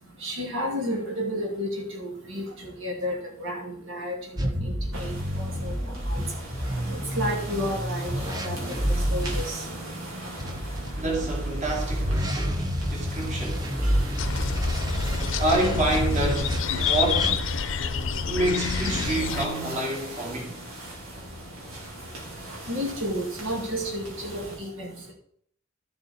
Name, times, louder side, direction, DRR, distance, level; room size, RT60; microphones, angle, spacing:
voice 1, 0.2-4.2 4.6-5.1 5.6-5.7 6.1-6.2 6.9-8.6 9.1-9.6 13.8-13.9 15.0-15.2 16.6-16.8 22.7-25.1, equal, 70° right, 2.3 m, -31 dB
sound 1, 4.4-9.4 10.4-17.7 18.5-19.1, equal, 20° right, 0.9 m, -29 dB
sound 2, 4.9-24.6, right 1 dB, 85° right, 3.4 m, -40 dB
voice 2, 10.9-13.7 15.4-17.5 18.3-20.6, right 1 dB, 35° right, 2.6 m, -28 dB
sound 3, 14.2-19.5, left 5 dB, 70° left, 0.7 m, -28 dB
13.0 x 7.0 x 4.3 m
head